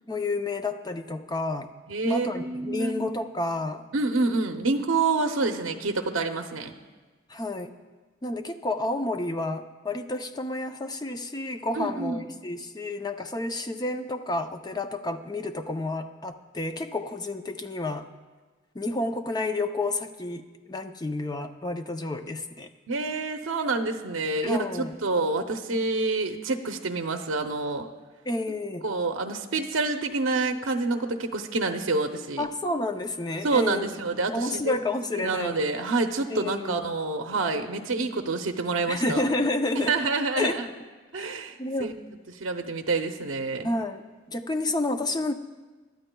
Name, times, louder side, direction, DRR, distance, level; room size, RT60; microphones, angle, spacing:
voice 1, 0.1-1.7 2.0-3.8 7.3-7.7 8.2-18.1 18.7-22.7 24.4-24.9 28.3-28.8 32.4-33.8 34.3-35.6 36.3-36.8 38.9-40.0 40.3-40.6 41.2-41.3 41.6-42.0 43.6-45.3, left 2 dB, 20° left, 7 dB, 0.5 m, -30 dB
voice 2, 1.9-3.1 3.9-6.7 11.7-12.2 22.9-27.9 28.8-32.4 33.4-34.8 35.2-39.2 39.7-40.7 41.1-41.9 42.3-43.7, right 3 dB, 75° right, 5 dB, 0.7 m, -27 dB
22.0 x 12.5 x 2.3 m, 1.3 s
head